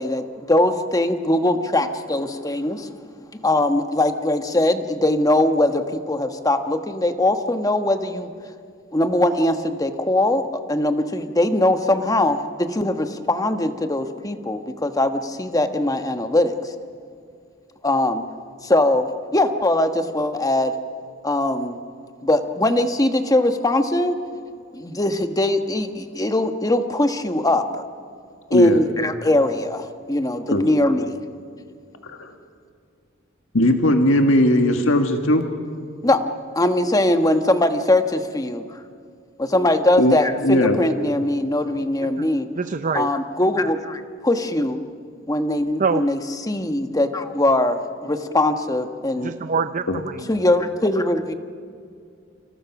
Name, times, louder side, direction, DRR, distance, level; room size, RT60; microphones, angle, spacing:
voice 1, 0.0-2.9 3.4-8.3 8.9-16.7 17.8-18.2 18.6-19.1 19.3-20.7 21.2-21.8 22.2-24.2 24.7-27.8 28.5-31.2 36.0-36.2 36.5-38.8 39.4-42.5 42.9-44.8 45.3-46.2 46.5-49.3 50.3-51.3, left 1 dB, 20° left, 7 dB, 1.3 m, -21 dB
voice 2, 28.5-28.8 30.5-30.6 32.0-32.3 33.5-35.4 40.0-40.2 40.4-40.8 49.9-50.0, left 1 dB, 70° left, 5 dB, 1.8 m, -18 dB
voice 3, 42.6-43.1 45.8-46.1 49.2-50.3, right 5 dB, 40° right, 10 dB, 0.5 m, -25 dB
29.0 x 27.0 x 6.0 m, 2.3 s
head